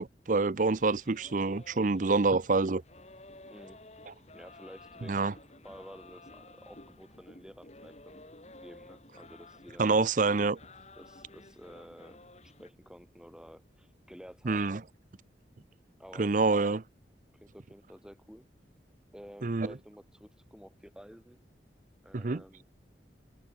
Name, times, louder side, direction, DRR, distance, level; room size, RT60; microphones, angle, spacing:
voice 1, 0.0-2.8 5.1-5.3 9.8-10.6 14.4-14.8 16.2-16.8 19.4-19.7 22.1-22.4, right 3 dB, 45° right, 0.6 m, -27 dB
sound 1, 0.7-12.7, left 2 dB, 40° left, 7.9 m, -53 dB
voice 2, 3.5-3.8 4.3-8.2 8.6-10.0 11.0-14.7 16.0-16.6 17.3-18.5 19.1-21.4 22.0-22.6, equal, 5° right, 6.2 m, -52 dB
head